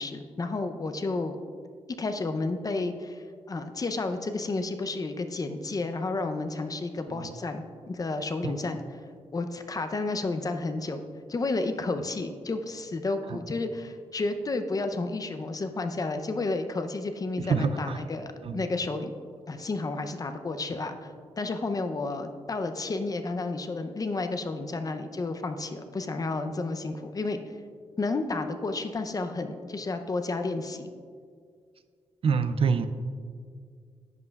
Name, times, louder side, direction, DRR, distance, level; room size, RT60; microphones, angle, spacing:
voice 1, 0.0-1.4 2.0-8.8 9.3-11.0 11.3-19.1 19.5-21.1 21.4-27.4 28.0-30.9, left 3 dB, 35° left, 7 dB, 0.5 m, -31 dB
voice 2, 17.4-18.0 18.4-18.6 32.2-32.9, right 5 dB, 55° right, 10 dB, 0.4 m, -26 dB
10.5 x 7.6 x 2.3 m, 2.1 s
cardioid pair, 105°, 11 cm